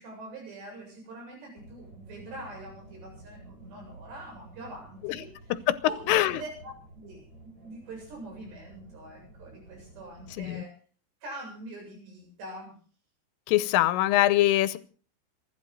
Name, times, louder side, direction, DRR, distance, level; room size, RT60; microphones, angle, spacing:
voice 1, 0.0-5.5 5.8-10.7 11.2-12.8, right 2 dB, 60° right, 1 dB, 9.6 m, -43 dB
sound 1, 1.6-10.4, right 2 dB, 15° right, 6.2 m, -51 dB
voice 2, 6.1-6.4 10.4-10.6 13.5-14.8, left 15 dB, 85° left, 15 dB, 3.4 m, -23 dB
27.0 x 11.5 x 3.9 m, 0.40 s
omnidirectional pair, 5.7 m